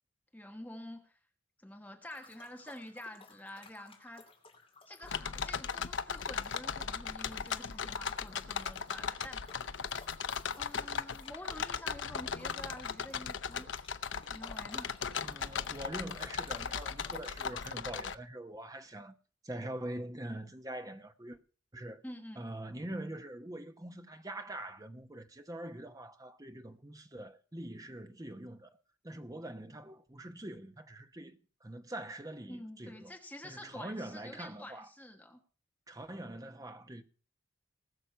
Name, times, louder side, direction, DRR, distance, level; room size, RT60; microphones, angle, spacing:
voice 1, 0.3-1.2 1.6-4.3 4.9-9.4 10.6-13.7 14.3-15.0 22.0-22.5 32.5-35.4, left 1 dB, 10° left, 1.3 m, -48 dB
sound 1, 2.0-17.7, left 4 dB, 30° left, 2.5 m, -57 dB
sound 2, 5.0-18.1, left 6 dB, 75° left, 0.7 m, -38 dB
voice 2, 15.2-19.1 19.4-21.4 21.7-22.0 22.4-28.7 29.0-33.1 33.4-34.9 35.9-37.0, right 1 dB, 20° right, 1.0 m, -44 dB
19.5 x 6.7 x 5.7 m
head